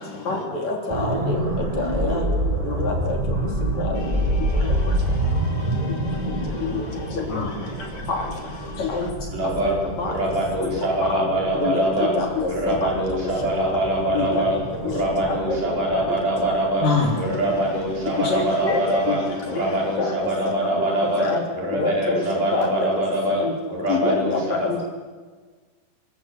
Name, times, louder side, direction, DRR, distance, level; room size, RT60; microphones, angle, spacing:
voice 1, 0.3-1.4 1.8-2.2 2.6-3.2 3.8-4.0 6.3-6.4 8.1-8.2 8.9-9.1 9.7-10.1 10.6-10.7 11.1-11.2 11.6-12.9 14.1-14.4 15.3-16.0 16.4-16.5 18.2-18.8 19.1-19.2 19.5-19.6 20.0-20.1 21.2-21.4 21.8-22.2 22.5-23.0 23.4-23.5 23.9-24.8, left 3 dB, 60° left, 1 dB, 4.3 m, -26 dB
sound 1, 0.9-18.8 19.1-19.3, right 1 dB, 25° right, 0.8 m, -28 dB
voice 2, 4.4-4.8 5.9-6.0 6.5-6.8 7.1-7.7 8.8-8.9 12.3-12.4 14.8-15.1 16.8-17.4 24.2-24.3, left 4 dB, 85° left, -8 dB, 6.0 m, -26 dB
voice 3, 9.3-9.7 10.0-12.2 12.4-14.6 14.8-16.9 17.2-21.3 21.6-23.4 23.7-24.6, right 1 dB, 80° right, -3 dB, 6.7 m, -24 dB
29.5 x 13.0 x 8.4 m, 1.5 s
omnidirectional pair, 3.6 m